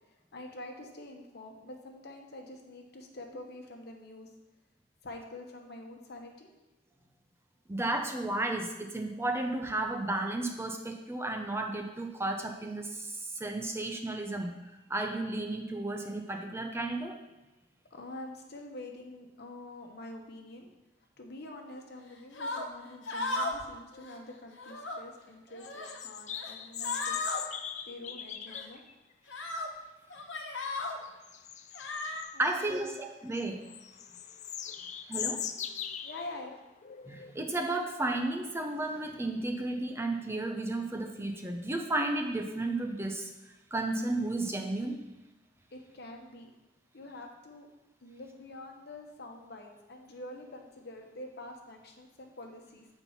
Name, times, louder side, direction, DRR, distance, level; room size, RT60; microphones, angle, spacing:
voice 1, 0.0-4.3 5.0-6.5 17.9-20.7 21.2-27.5 27.9-28.8 32.3-32.9 36.0-36.6 45.7-46.5 46.9-47.7 48.0-52.9, left 2 dB, 60° left, 3 dB, 1.1 m, -46 dB
voice 2, 7.7-14.5 14.9-17.2 32.4-33.6 35.1-35.4 37.1-43.3 43.7-45.0, right 2 dB, 15° right, 3 dB, 0.6 m, -33 dB
sound 1, 22.3-22.7 23.1-23.6 23.9-24.2 24.5-25.0 25.5-26.0 26.3-26.5 26.8-27.4 28.5-28.6 29.3-29.7 30.1-31.0 31.7-32.2, left 2 dB, 85° left, 1.1 m, -35 dB
sound 2, 25.6-28.9 31.0-32.9 33.3-37.6, left 9 dB, 40° left, 0.4 m, -40 dB
7.4 x 4.5 x 5.5 m, 1.0 s
head